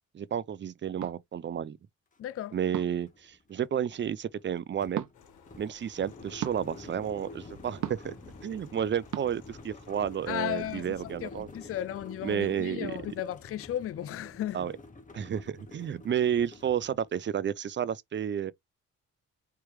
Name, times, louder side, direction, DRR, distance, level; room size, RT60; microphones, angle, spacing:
voice 1, 0.1-1.8 2.5-5.1 5.6-8.1 8.4-11.5 12.2-13.0 14.5-14.7 15.1-18.5, right 9 dB, 40° right, 0.6 m, -31 dB
sound 1, 1.0-1.2 2.7-3.1 4.9-5.1 6.4-6.6 7.8-8.1 9.1-9.3, right 12 dB, 70° right, 0.8 m, -35 dB
sound 2, 2.1-2.2 2.5-17.3, left 2 dB, 25° left, 1.5 m, -49 dB
voice 2, 2.2-2.6 10.3-14.7, left 12 dB, 50° left, 0.5 m, -35 dB
sound 3, 5.1-11.2, left 8 dB, 75° left, 1.5 m, -58 dB
4.5 x 3.4 x 3.2 m
cardioid pair, 90°, 30 cm